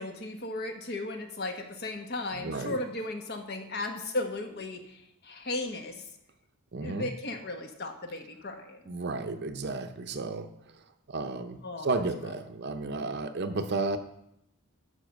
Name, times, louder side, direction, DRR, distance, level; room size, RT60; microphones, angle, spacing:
voice 1, 0.0-6.1 6.8-8.8 11.6-11.9, left 2 dB, 50° left, 6 dB, 1.3 m, -36 dB
voice 2, 2.3-2.8 6.7-7.1 8.9-10.5 11.1-14.0, right 3 dB, 50° right, 8 dB, 0.7 m, -33 dB
11.5 x 5.5 x 6.4 m, 0.80 s
head